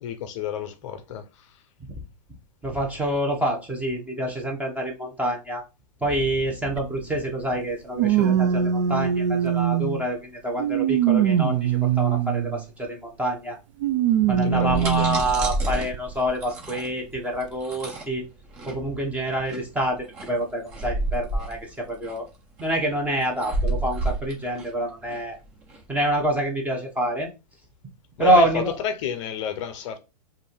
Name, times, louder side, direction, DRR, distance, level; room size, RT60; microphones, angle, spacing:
voice 1, 0.0-1.2 14.4-15.1 28.2-30.0, left 8 dB, 50° left, 0.6 m, -31 dB
voice 2, 2.6-5.6 6.0-13.6 14.3-18.2 18.7-22.3 22.6-25.4 25.9-27.3 28.2-28.8, right 1 dB, 5° right, 1.1 m, -26 dB
sound 1, 6.8-6.9 8.0-10.0 10.6-12.6 13.8-15.2 15.9-16.0 17.2-17.3, right 10 dB, 50° right, 0.5 m, -22 dB
sound 2, 14.4-25.8, right 2 dB, 30° right, 1.6 m, -30 dB
5.2 x 2.6 x 3.2 m
hypercardioid pair, 130°, 21 cm